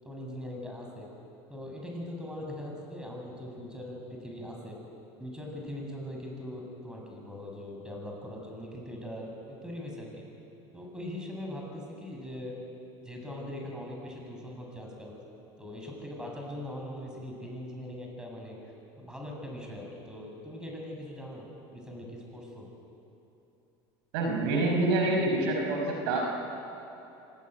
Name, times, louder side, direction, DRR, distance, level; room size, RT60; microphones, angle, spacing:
voice 1, 0.0-1.1 1.5-4.8 5.2-10.2 10.7-12.6 13.0-15.2 15.6-18.6 19.0-22.7, left 1 dB, 5° right, -1 dB, 7.8 m, -41 dB
voice 2, 24.1-26.3, right 2 dB, 80° right, 1 dB, 5.4 m, -27 dB
27.0 x 19.0 x 9.4 m, 2.9 s
supercardioid pair, 95°, 13 cm